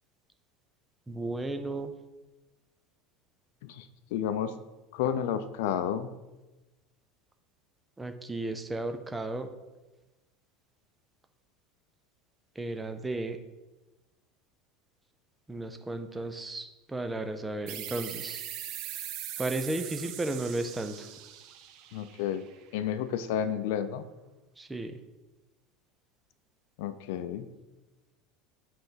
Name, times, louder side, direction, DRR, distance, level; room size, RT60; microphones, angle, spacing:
voice 1, 1.1-1.9 8.0-9.5 12.6-13.4 15.5-18.4 19.4-21.1 24.6-24.9, right 2 dB, 10° right, 7 dB, 0.5 m, -34 dB
voice 2, 4.1-4.5 4.9-6.1 21.9-22.4 22.7-24.0 26.8-27.5, left 9 dB, 70° left, 12 dB, 0.6 m, -31 dB
sound 1, 17.7-22.9, right 11 dB, 50° right, 0.6 m, -41 dB
8.0 x 3.5 x 5.6 m, 1.1 s
supercardioid pair, 165°, 0 cm